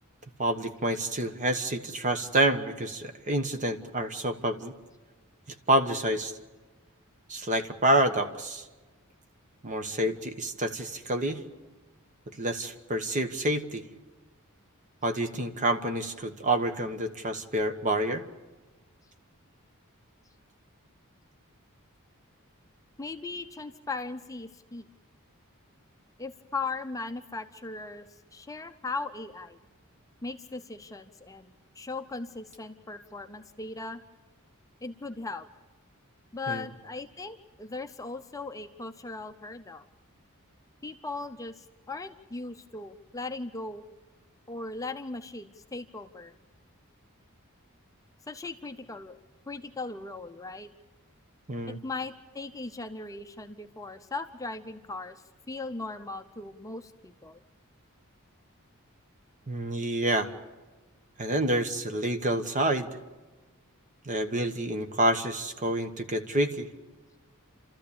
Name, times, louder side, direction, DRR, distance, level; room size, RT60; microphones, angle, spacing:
voice 1, 0.4-4.7 5.7-6.3 7.3-8.7 9.6-11.4 12.3-13.8 15.0-18.2 36.5-36.6 51.5-51.8 59.5-60.3 61.2-62.9 64.0-66.7, right 1 dB, 35° right, 8 dB, 1.2 m, -28 dB
voice 2, 23.0-24.9 26.2-28.1 28.3-29.6 30.2-34.0 34.8-35.5 36.3-39.9 40.8-43.8 44.5-46.3 48.3-49.1 49.5-50.7 51.7-57.4, left 3 dB, 15° left, 7 dB, 0.6 m, -38 dB
29.5 x 13.5 x 8.6 m, 1.2 s
head